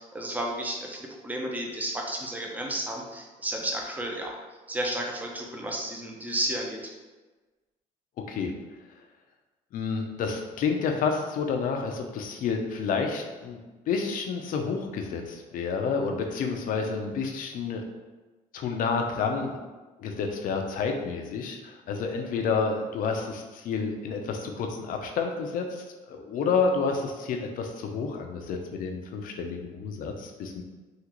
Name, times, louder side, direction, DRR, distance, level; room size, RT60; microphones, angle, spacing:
voice 1, 0.0-4.4 4.7-6.9, right 1 dB, 10° right, 0 dB, 0.6 m, -32 dB
voice 2, 9.7-13.6 13.9-17.8 18.5-19.6 20.0-30.6, left 5 dB, 60° left, 3 dB, 0.5 m, -29 dB
3.7 x 2.4 x 3.0 m, 1.2 s
cardioid pair, 110°, 16 cm